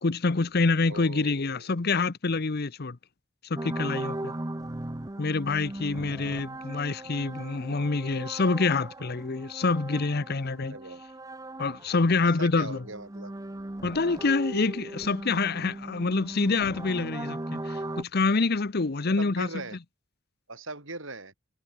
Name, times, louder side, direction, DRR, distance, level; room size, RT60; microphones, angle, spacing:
voice 1, 0.0-3.0 3.5-4.3 5.2-10.7 11.6-12.8 13.8-19.5, left 3 dB, 45° left, 0.8 m, -26 dB
voice 2, 0.9-1.7 10.7-11.0 12.2-13.3 19.2-19.8 20.5-21.3, right 2 dB, 65° right, 7.4 m, -40 dB
sound 1, 3.6-12.1 12.4-18.0, right 1 dB, 15° right, 0.7 m, -38 dB
head